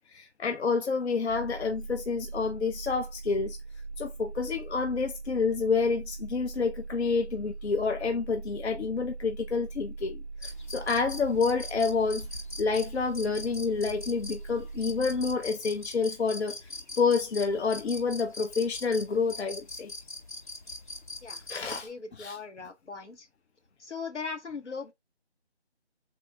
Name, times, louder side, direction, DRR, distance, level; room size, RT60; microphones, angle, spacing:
voice 1, 0.0-3.6 4.0-12.3 12.6-19.9 21.5-21.9 22.2-22.4, left 4 dB, 70° left, 0.5 m, -29 dB
sound 1, 1.3-15.4, right 3 dB, 60° right, 0.5 m, -41 dB
sound 2, 10.4-21.9, left 2 dB, 45° left, 0.8 m, -42 dB
voice 2, 21.2-23.3 23.8-24.9, left 4 dB, 85° left, 1.0 m, -39 dB
3.5 x 2.2 x 3.5 m
figure-of-eight pair, 170°, 34 cm